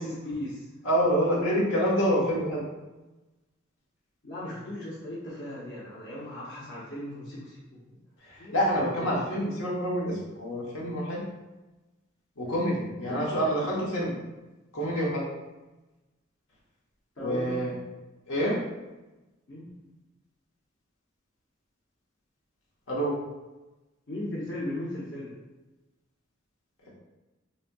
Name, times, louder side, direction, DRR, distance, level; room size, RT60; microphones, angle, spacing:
voice 1, 0.0-0.7 4.2-8.0 8.4-9.1 13.0-13.3 17.2-17.8 19.5-19.9 24.1-25.3, left 1 dB, 60° left, -7 dB, 0.8 m, -37 dB
voice 2, 0.8-2.6 8.5-11.2 12.4-14.1 14.7-15.2 17.2-17.7 18.3-18.6 22.9-23.1, equal, 85° left, -5 dB, 1.0 m, -27 dB
4.2 x 2.7 x 2.2 m, 1.1 s
head